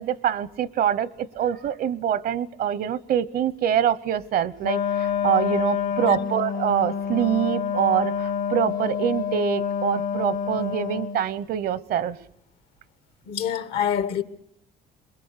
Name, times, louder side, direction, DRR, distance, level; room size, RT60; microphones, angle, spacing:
voice 1, 0.0-12.2, right 10 dB, 70° right, 0.9 m, -25 dB
Wind instrument woodwind instrument, 4.6-11.3, left 7 dB, 55° left, 0.8 m, -27 dB
voice 2, 13.3-14.2, left 9 dB, 85° left, 1.4 m, -26 dB
23.5 x 21.0 x 6.6 m
cardioid pair, 95°, 16 cm